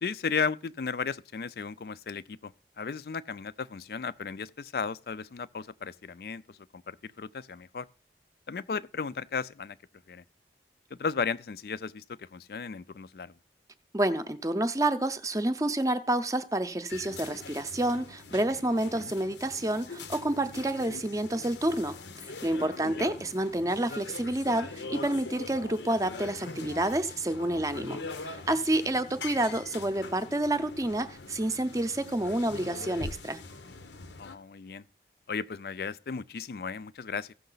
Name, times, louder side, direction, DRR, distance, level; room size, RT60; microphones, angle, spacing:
voice 1, 0.0-7.9 8.5-9.8 10.1-10.2 10.9-13.3 19.0-19.1 22.8-23.1 34.2-34.8 35.3-37.3, left 5 dB, 60° left, 0.4 m, -35 dB
voice 2, 13.9-33.4, right 1 dB, 20° right, 0.6 m, -29 dB
sound 1, 16.9-34.4, left 3 dB, 85° left, 0.9 m, -43 dB
15.5 x 6.4 x 3.9 m
head